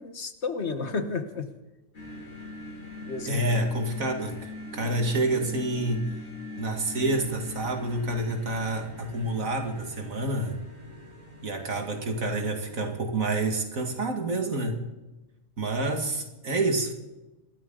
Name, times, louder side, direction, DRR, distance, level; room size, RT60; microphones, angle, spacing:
voice 1, 0.0-1.5 3.0-3.6 4.8-4.9, left 4 dB, 55° left, 8 dB, 1.6 m, -32 dB
sound 1, 1.9-13.0, left 1 dB, 75° left, 8.4 m, -42 dB
voice 2, 3.3-6.2 6.6-10.6 11.4-14.9 15.6-16.9, right 2 dB, 80° right, 4 dB, 2.6 m, -28 dB
26.0 x 13.5 x 3.9 m, 1.0 s
omnidirectional pair, 1.4 m